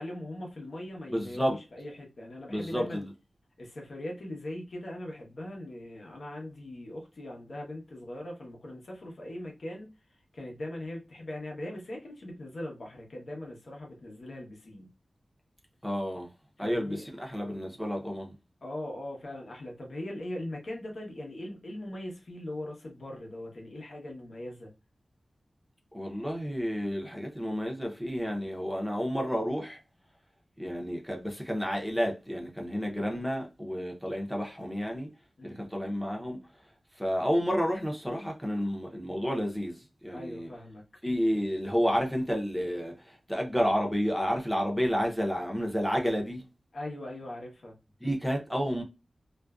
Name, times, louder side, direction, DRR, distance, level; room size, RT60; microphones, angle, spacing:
voice 1, 0.0-3.1 3.6-9.9 10.3-14.9 16.6-17.0 18.6-24.7 35.4-35.6 40.1-40.8 46.7-47.7, left 1 dB, 65° left, 0.8 m, -40 dB
voice 2, 1.1-1.6 2.5-3.1 15.8-16.3 16.6-18.3 25.9-29.8 30.6-35.1 35.4-36.4 37.0-39.8 40.0-40.5 41.0-42.9 43.3-46.4 48.0-48.8, equal, ahead, 0.6 m, -30 dB
2.5 x 2.1 x 2.3 m
wide cardioid pair, 95°, 0 cm